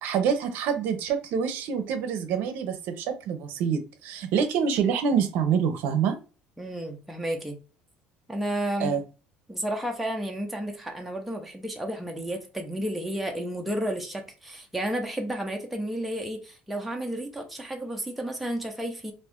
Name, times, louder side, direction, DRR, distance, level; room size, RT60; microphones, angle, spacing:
voice 1, 0.0-6.2 8.8-9.0, right 7 dB, 65° right, 0.6 m, -26 dB
voice 2, 6.6-7.6 8.3-9.0 9.5-19.1, right 1 dB, ahead, 0.5 m, -32 dB
2.5 x 2.4 x 3.5 m
cardioid pair, 155°, 4 cm